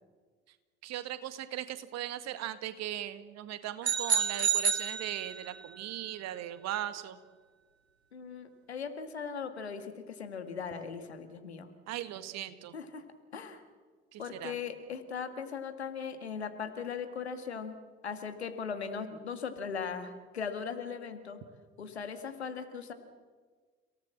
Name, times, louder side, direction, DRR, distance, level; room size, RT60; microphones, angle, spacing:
voice 1, 0.8-7.2 11.9-12.8 14.1-14.5, right 12 dB, 55° right, 12 dB, 1.8 m, -38 dB
sound 1, 3.8-5.7, right 7 dB, 85° right, 1.6 m, -29 dB
voice 2, 8.1-11.7 12.7-13.0 13.3-13.6 14.2-17.8 18.0-21.4 21.8-22.9, left 6 dB, 80° left, 8 dB, 1.9 m, -39 dB
30.0 x 18.0 x 7.6 m, 1.5 s
figure-of-eight pair, 50°, 32 cm